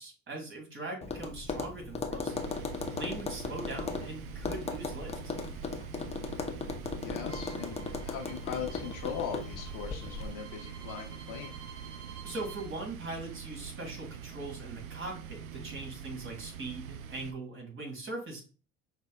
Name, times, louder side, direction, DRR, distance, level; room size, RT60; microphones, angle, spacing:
voice 1, 0.0-5.4 12.2-18.4, right 2 dB, 30° right, 1 dB, 2.0 m, -41 dB
Tap, 1.0-10.3, left 4 dB, 15° left, 0.6 m, -37 dB
sound 1, 2.3-17.3, right 8 dB, 80° right, 0.5 m, -45 dB
voice 2, 7.0-11.5, left 8 dB, 50° left, 2 dB, 1.0 m, -39 dB
Bowed string instrument, 7.3-12.7, right 6 dB, 60° right, 1.7 m, -51 dB
5.2 x 3.4 x 2.2 m, 0.35 s
hypercardioid pair, 70°, 41 cm